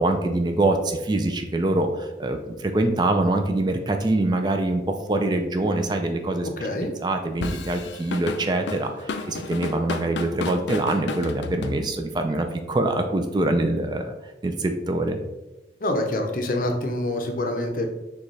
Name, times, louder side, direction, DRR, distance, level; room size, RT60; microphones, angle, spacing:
voice 1, 0.0-6.5 6.8-14.1 14.4-15.2, right 2 dB, 25° right, 5 dB, 0.3 m, -24 dB
voice 2, 6.6-6.9 15.8-17.9, left 1 dB, 50° left, 3 dB, 0.6 m, -26 dB
Drum kit / Drum, 7.4-12.2, left 3 dB, 85° left, 0.4 m, -32 dB
6.4 x 2.3 x 3.1 m, 1.0 s
head